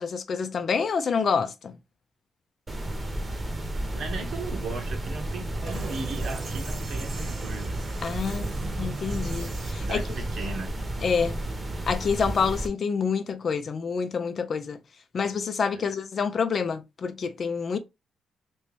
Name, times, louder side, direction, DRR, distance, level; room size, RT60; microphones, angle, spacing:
voice 1, 0.0-1.7 8.0-10.0 11.0-11.4 11.9-14.8 15.1-17.8, left 6 dB, 50° left, 0.5 m, -27 dB
sound 1, 2.7-12.7, right 1 dB, 20° right, 1.0 m, -32 dB
voice 2, 3.9-7.8 9.7-10.7 15.7-15.9, right 4 dB, 70° right, 1.2 m, -37 dB
sound 2, 5.7-10.5, right 3 dB, 45° right, 1.1 m, -40 dB
3.1 x 2.9 x 3.3 m
cardioid pair, 105°, 0 cm